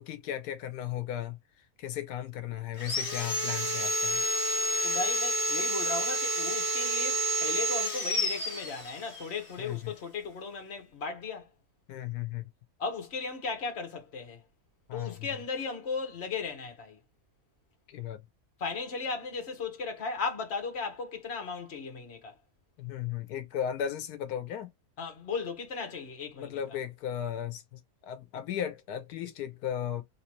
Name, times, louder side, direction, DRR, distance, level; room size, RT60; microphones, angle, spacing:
voice 1, 0.0-4.2 9.6-9.8 11.9-12.5 14.9-15.1 17.9-18.2 22.8-24.7 26.4-30.0, left 10 dB, 85° left, 1.2 m, -36 dB
Sawing, 2.8-9.2, right 1 dB, 20° left, 1.2 m, -29 dB
voice 2, 4.8-11.5 12.8-14.4 14.9-17.0 18.6-22.3 25.0-26.6, left 4 dB, 45° left, 1.3 m, -36 dB
3.1 x 3.0 x 2.9 m
omnidirectional pair, 1.6 m